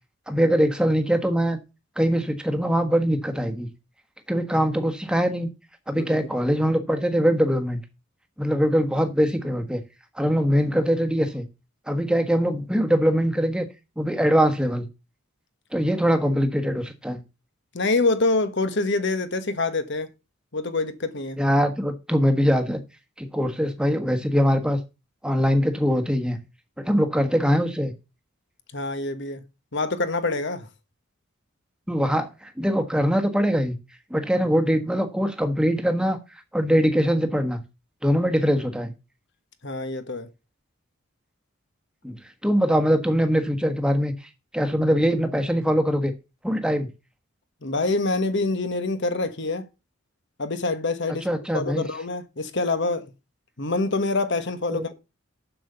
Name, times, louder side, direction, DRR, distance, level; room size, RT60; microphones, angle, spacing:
voice 1, 0.3-1.6 2.0-3.7 4.3-5.5 5.9-7.8 8.4-9.8 10.1-11.4 11.9-13.7 14.0-14.9 15.7-17.2 21.4-22.8 23.2-24.8 25.2-26.4 26.8-27.9 31.9-33.8 34.1-36.2 36.5-37.6 38.0-38.9 42.0-46.1 46.4-46.9 51.2-51.8 54.7-54.8, equal, 5° right, 1.3 m, -22 dB
voice 2, 17.7-20.1 20.5-21.4 28.7-29.4 29.7-30.7 39.6-40.3 47.6-49.6 50.4-51.3 51.5-53.1 53.6-54.9, left 3 dB, 55° left, 1.3 m, -25 dB
7.7 x 6.8 x 6.8 m
head